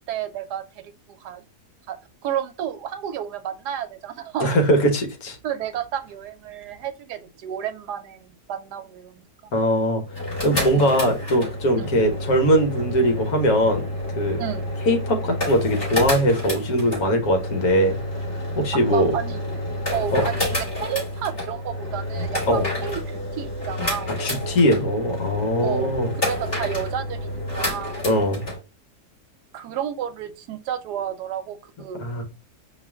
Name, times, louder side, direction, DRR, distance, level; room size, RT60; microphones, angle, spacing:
voice 1, 0.1-1.4 1.9-4.6 5.4-9.5 10.7-11.0 11.8-12.0 14.4-14.7 18.9-19.4 19.9-24.1 25.6-25.9 26.3-28.0 29.5-32.0, right 10 dB, 85° right, 1.2 m, -31 dB
voice 2, 4.4-5.4 9.5-10.0 10.4-13.8 14.2-14.4 14.9-18.0 18.6-19.1 20.1-20.2 22.5-22.7 24.2-26.1 28.0-28.4 32.0-32.2, equal, 65° left, 1.5 m, -21 dB
sound 1, 10.0-28.6, left 1 dB, 35° left, 3.0 m, -29 dB
4.8 x 2.5 x 3.4 m
omnidirectional pair, 1.7 m